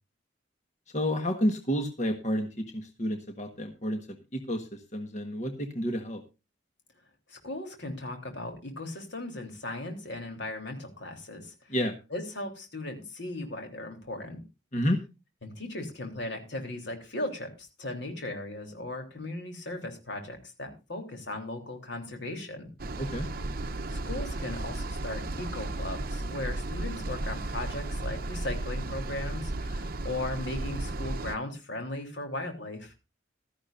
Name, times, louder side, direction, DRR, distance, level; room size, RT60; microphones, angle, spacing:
voice 1, 0.9-6.2 11.7-12.0 14.7-15.0 23.0-23.3, equal, 40° left, 6 dB, 1.5 m, -30 dB
voice 2, 7.3-11.7 12.1-14.4 15.4-22.7 23.9-32.9, left 2 dB, 65° left, 4 dB, 3.5 m, -37 dB
sound 1, 22.8-31.4, right 2 dB, 50° right, 0.8 m, -34 dB
15.5 x 13.5 x 2.6 m, 0.28 s
head